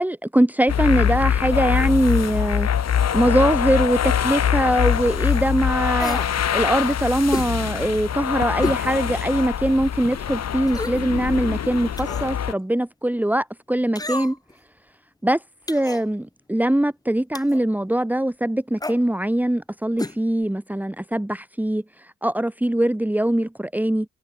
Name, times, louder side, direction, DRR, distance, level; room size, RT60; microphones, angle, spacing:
voice 1, 0.0-2.7 3.1-14.4 15.2-15.4 15.7-21.8 22.2-24.1, right 1 dB, 5° right, 3.2 m, -22 dB
sound 1, 0.7-12.5, left 9 dB, 60° left, 6.9 m, -23 dB
sound 2, 6.0-6.3 7.3-7.5 8.6-8.8 9.3-9.4 10.7-11.1 12.0-12.3 14.0-14.5 15.7-16.0 17.3-17.6 18.8-19.0 20.0-20.2 20.4-20.5, left 2 dB, 10° left, 2.6 m, -30 dB
cardioid pair, 90°, 30 cm